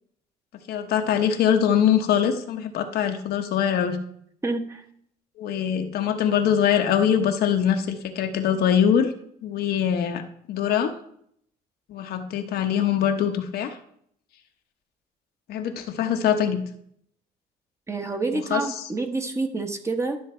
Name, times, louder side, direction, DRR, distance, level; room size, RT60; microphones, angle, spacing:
voice 1, 0.7-4.0 5.4-9.1 9.4-10.2 10.5-10.9 11.9-13.8 15.5-16.6 18.5-18.6, left 9 dB, 70° left, 6 dB, 1.0 m, -23 dB
voice 2, 4.4-4.9 17.9-20.2, right 3 dB, 15° right, 5 dB, 1.1 m, -28 dB
12.0 x 6.4 x 4.4 m, 0.70 s
cardioid pair, 110°, 17 cm